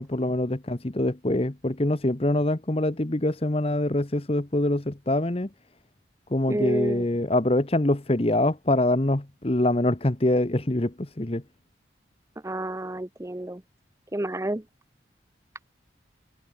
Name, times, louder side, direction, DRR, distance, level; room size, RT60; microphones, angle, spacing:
voice 1, 0.0-5.5 6.3-11.4, left 1 dB, 30° left, 1.0 m, -24 dB
voice 2, 6.5-7.2 12.4-13.6 14.1-14.6, right 1 dB, 15° right, 0.6 m, -29 dB
head